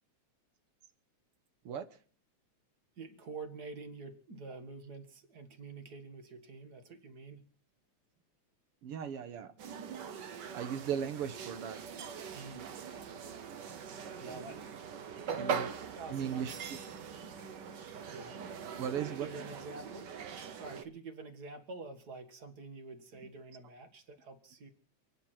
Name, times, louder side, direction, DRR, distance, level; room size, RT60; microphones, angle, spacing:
voice 1, 3.0-7.5 12.3-12.7 14.2-14.6 15.3-16.5 18.1-18.4 19.0-20.1 20.5-24.7, right 3 dB, 40° right, 8 dB, 1.9 m, -47 dB
voice 2, 8.8-9.5 10.5-11.8 15.4-15.7 16.1-16.5 18.8-19.3, right 8 dB, 60° right, 11 dB, 1.7 m, -37 dB
sound 1, 9.6-20.8, right 7 dB, 80° right, 0.9 m, -42 dB
28.5 x 9.9 x 4.5 m, 0.42 s
omnidirectional pair, 3.4 m